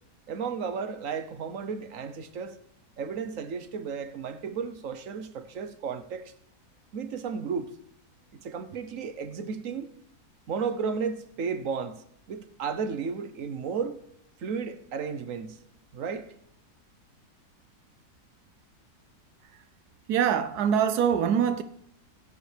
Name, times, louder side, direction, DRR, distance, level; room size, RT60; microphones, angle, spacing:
voice 1, 0.3-2.6 3.0-6.3 6.9-7.7 8.4-9.9 10.5-14.0 14.4-15.6 15.9-16.3, right 6 dB, 60° right, 1.2 m, -33 dB
voice 2, 20.1-21.6, right 8 dB, 80° right, 1.2 m, -24 dB
17.0 x 9.4 x 3.3 m
omnidirectional pair, 1.6 m